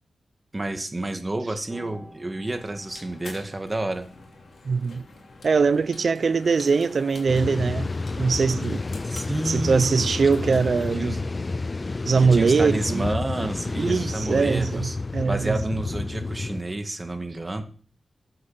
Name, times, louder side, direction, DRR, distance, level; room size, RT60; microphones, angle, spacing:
voice 1, 0.5-4.1 9.0-10.0 10.4-10.6 10.9-11.3 12.2-15.0 15.2-17.6, right 2 dB, 30° right, 2.0 m, -30 dB
sound 1, 1.7-10.1, equal, 5° left, 4.1 m, -53 dB
sound 2, 2.5-11.0, left 3 dB, 80° left, 3.0 m, -46 dB
voice 2, 4.6-5.0 5.4-7.9 8.2-8.8 9.5-11.2 12.1-13.1 13.8-15.6, right 5 dB, 70° right, 0.5 m, -22 dB
sound 3, 7.3-16.6, left 3 dB, 40° left, 0.4 m, -30 dB
12.0 x 7.7 x 5.8 m
cardioid pair, 60°, 0 cm